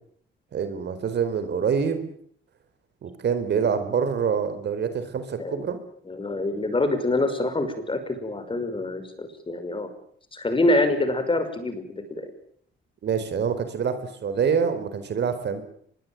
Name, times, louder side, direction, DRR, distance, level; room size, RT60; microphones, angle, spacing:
voice 1, 0.5-2.1 3.0-5.8 13.0-15.6, right 6 dB, 60° right, 10 dB, 4.4 m, -26 dB
voice 2, 6.1-9.9 10.3-11.8 12.2-12.3, left 2 dB, 25° left, 9 dB, 6.0 m, -25 dB
24.5 x 21.5 x 9.1 m, 0.65 s
cardioid pair, 90°, 20 cm